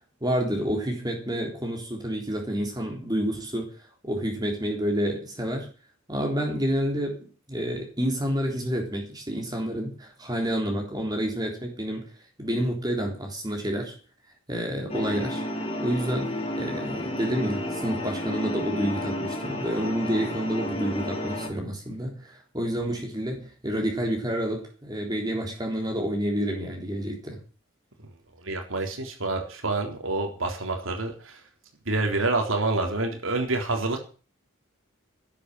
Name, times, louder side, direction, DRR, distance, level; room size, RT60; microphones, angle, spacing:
voice 1, 0.2-3.7 4.0-5.7 6.1-12.1 12.4-13.9 14.5-15.4 15.8-27.4, equal, 20° right, 1 dB, 3.7 m, -29 dB
sound 1, 14.9-21.5, left 1 dB, 30° left, 3.9 m, -31 dB
voice 2, 28.4-31.4 31.9-34.0, right 2 dB, 75° right, 3 dB, 3.8 m, -27 dB
13.0 x 9.7 x 7.8 m, 0.38 s
head